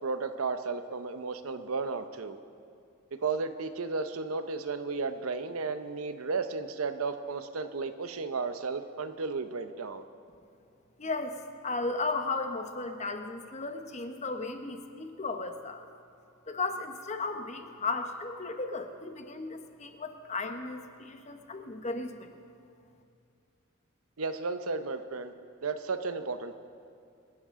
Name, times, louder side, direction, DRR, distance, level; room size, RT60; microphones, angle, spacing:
voice 1, 0.0-2.4 3.1-10.0 24.2-25.3 25.6-26.6, right 4 dB, 85° right, 10 dB, 0.8 m, -34 dB
voice 2, 11.0-15.9 16.5-22.3, left 3 dB, 35° left, 6 dB, 0.9 m, -35 dB
25.5 x 10.5 x 3.7 m, 2.5 s
head